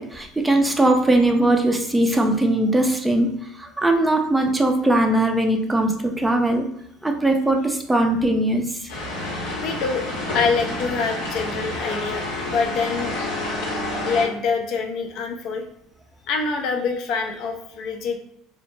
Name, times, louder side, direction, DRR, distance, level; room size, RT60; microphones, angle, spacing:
voice 1, 0.0-3.3 3.6-6.7 7.0-8.9, right 1 dB, 10° right, 4 dB, 0.4 m, -20 dB
sound 1, 8.9-14.2, left 1 dB, 80° left, 0.9 m, -29 dB
voice 2, 9.6-10.0 10.3-13.5 14.1-15.6 16.3-18.2, left 5 dB, 60° left, 3 dB, 0.4 m, -25 dB
2.1 x 2.0 x 3.1 m, 0.73 s
hypercardioid pair, 80°, 0 cm